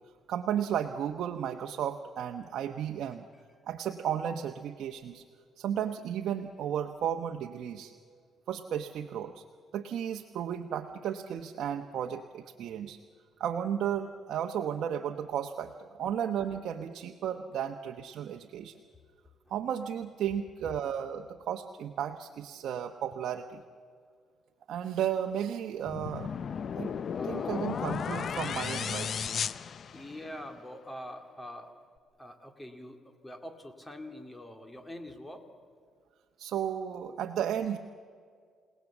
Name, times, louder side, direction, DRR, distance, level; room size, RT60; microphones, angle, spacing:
voice 1, 0.3-3.3 3.7-5.2 5.6-7.9 8.5-9.4 9.7-13.0 13.4-18.8 19.5-23.6 24.7-26.3 26.8-26.9 27.2-29.1 36.4-37.8, right 9 dB, 70° right, 4 dB, 1.0 m, -34 dB
sound 1, 25.9-30.5, left 7 dB, 50° left, 0.6 m, -34 dB
voice 2, 27.1-27.7 29.9-31.7 32.2-35.4, left 1 dB, 10° left, 6 dB, 2.3 m, -44 dB
29.5 x 18.0 x 7.3 m, 2.1 s
cardioid pair, 105°, 0 cm